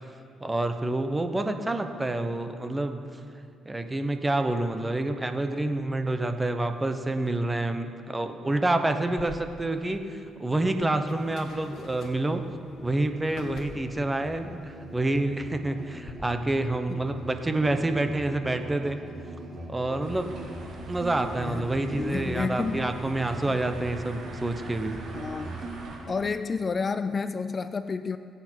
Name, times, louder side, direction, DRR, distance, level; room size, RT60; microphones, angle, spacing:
voice 1, 0.4-3.0 3.7-12.4 12.8-19.0 19.7-20.3 20.9-25.0, right 2 dB, 15° right, 7 dB, 1.1 m, -28 dB
sound 1, 9.1-16.1, left 3 dB, 65° left, 1.7 m, -49 dB
Musical instrument, 11.7-26.3, right 2 dB, 45° right, 2.2 m, -42 dB
sound 2, 20.0-26.0, right 2 dB, 65° right, 3.9 m, -44 dB
voice 2, 21.4-22.9 23.4-23.6 25.1-25.5 26.1-28.2, left 4 dB, 35° left, 11 dB, 0.4 m, -31 dB
21.5 x 8.5 x 4.6 m, 2.6 s
cardioid pair, 90°, 0 cm